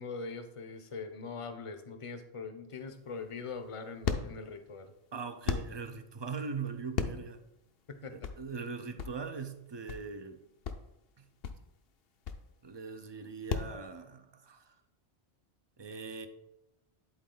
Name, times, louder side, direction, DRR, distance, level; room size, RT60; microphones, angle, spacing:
voice 1, 0.0-4.9 7.9-8.2, left 4 dB, 35° left, 8 dB, 0.7 m, -42 dB
sound 1, 2.9-13.7, left 6 dB, 65° left, 0.8 m, -38 dB
voice 2, 5.1-7.4 8.1-10.4 11.2-11.3 12.6-14.8 15.8-16.3, right 5 dB, 35° right, 8 dB, 0.4 m, -41 dB
10.5 x 4.2 x 3.8 m, 0.87 s
omnidirectional pair, 1.1 m